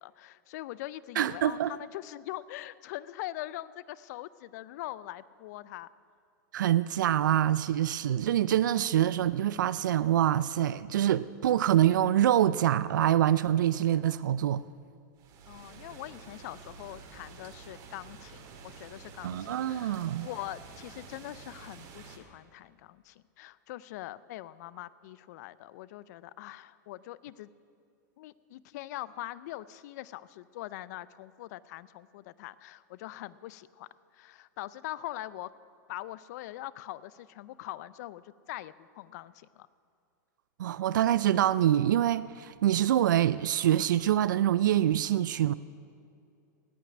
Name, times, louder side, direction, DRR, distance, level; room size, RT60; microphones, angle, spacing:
voice 1, 0.0-5.9 15.5-27.5 28.2-33.9 34.1-35.5 35.9-39.7, left 15 dB, 60° left, 0.5 m, -42 dB
voice 2, 1.2-1.7 6.5-14.6 19.2-20.3 40.6-45.5, right 11 dB, 85° right, 0.4 m, -25 dB
sound 1, 15.2-22.2, right 5 dB, 40° right, 2.3 m, -49 dB
17.5 x 5.9 x 9.7 m
hypercardioid pair, 125°, 10 cm